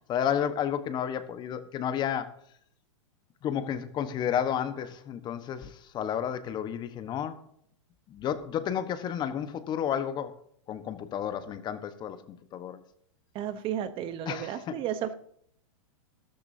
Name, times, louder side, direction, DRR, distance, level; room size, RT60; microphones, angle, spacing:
voice 1, 0.1-2.3 3.4-7.4 8.1-10.4 10.7-12.2 12.5-12.8 14.3-14.7, left 9 dB, 25° left, 10 dB, 1.2 m, -31 dB
voice 2, 13.3-15.1, right 10 dB, 30° right, 12 dB, 1.0 m, -33 dB
13.5 x 13.5 x 2.8 m, 0.65 s
hypercardioid pair, 135°, 17 cm